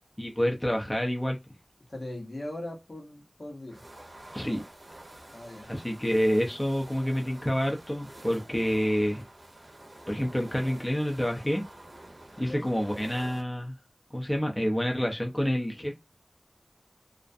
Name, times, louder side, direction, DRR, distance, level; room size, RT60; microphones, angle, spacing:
voice 1, 0.2-1.4 4.3-4.6 5.7-9.2 10.1-11.6 12.4-13.7 14.1-15.9, equal, 20° left, 0.5 m, -28 dB
voice 2, 1.9-3.8 5.3-5.7 12.4-12.7, left 1 dB, 80° left, 0.9 m, -39 dB
sound 1, 3.7-13.4, right 1 dB, 60° right, 0.6 m, -48 dB
2.4 x 2.1 x 2.5 m
wide cardioid pair, 50°, 0 cm